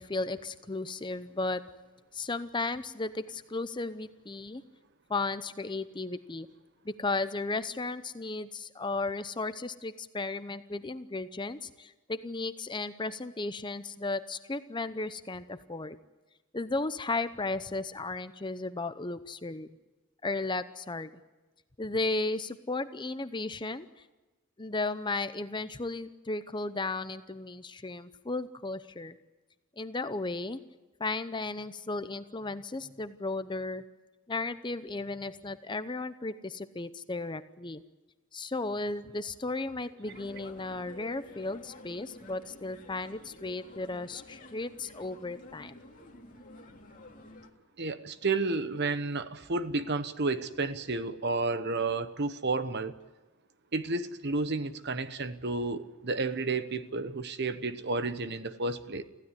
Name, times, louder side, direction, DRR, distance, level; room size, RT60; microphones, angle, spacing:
voice 1, 0.0-1.6 2.1-4.6 5.1-6.5 6.8-16.0 16.5-19.7 20.2-21.1 21.8-23.9 24.6-29.2 29.8-30.6 31.0-33.8 34.3-37.8 38.3-45.8, left 3 dB, 20° left, 12 dB, 0.7 m, -35 dB
sound 1, 40.0-47.5, left 1 dB, 35° left, 2.6 m, -50 dB
voice 2, 47.8-52.9 53.7-59.0, right 3 dB, 50° right, 12 dB, 1.1 m, -31 dB
25.5 x 15.5 x 9.9 m, 1.1 s
head